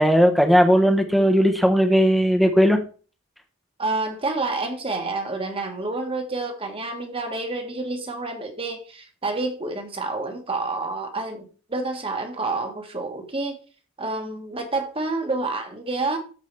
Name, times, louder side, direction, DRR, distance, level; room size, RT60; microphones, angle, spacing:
voice 1, 0.0-2.8, equal, ahead, 1.1 m, -17 dB
voice 2, 3.8-13.6 14.0-16.2, right 3 dB, 25° right, 1.6 m, -28 dB
13.5 x 4.7 x 3.4 m
head